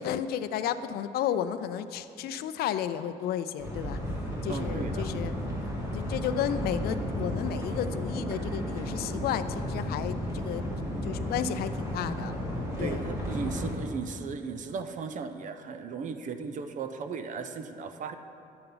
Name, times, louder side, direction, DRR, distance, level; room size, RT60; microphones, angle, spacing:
voice 1, 0.0-4.0 4.4-5.3 5.6-10.6 11.0-12.3 12.8-13.0, left 9 dB, 70° left, 12 dB, 0.4 m, -32 dB
sound 1, 3.6-13.7, equal, 15° right, 2.0 m, -33 dB
voice 2, 4.5-5.1 12.8-18.1, right 5 dB, 50° right, 9 dB, 0.5 m, -36 dB
10.5 x 6.8 x 3.9 m, 2.6 s
cardioid pair, 110°, 17 cm